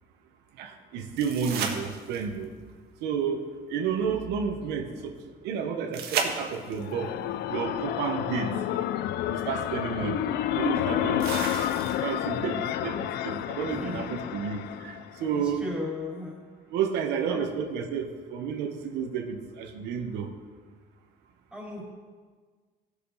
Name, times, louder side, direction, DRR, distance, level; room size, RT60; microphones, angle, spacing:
voice 1, 0.6-2.5 3.0-7.2 7.5-8.6 9.3-15.6 16.7-20.3, right 6 dB, 90° right, 4 dB, 1.2 m, -31 dB
sound 1, 1.2-2.4 5.9-6.9 8.8-8.9 11.2-12.2 15.2-15.3, right 6 dB, 70° right, 1.5 m, -33 dB
sound 2, 6.5-15.3, left 12 dB, 75° left, 0.5 m, -30 dB
voice 2, 13.6-14.3 15.2-16.4 17.3-17.4 21.5-21.8, left 2 dB, ahead, -5 dB, 3.7 m, -37 dB
17.0 x 6.8 x 4.2 m, 1.5 s
cardioid pair, 110°, 17 cm